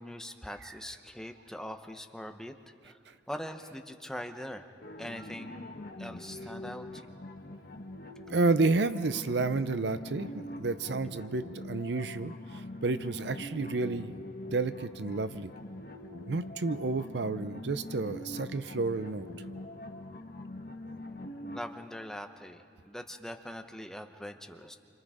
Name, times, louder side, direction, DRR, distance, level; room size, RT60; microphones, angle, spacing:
voice 1, 0.0-4.6 5.0-7.0 21.5-24.8, equal, 5° left, 5 dB, 0.8 m, -42 dB
sound 1, 4.8-21.6, left 1 dB, 55° left, 1.1 m, -43 dB
voice 2, 8.3-14.1 14.5-15.5 16.3-19.3, right 3 dB, 65° right, 13 dB, 0.6 m, -30 dB
28.5 x 26.0 x 5.0 m, 2.7 s
head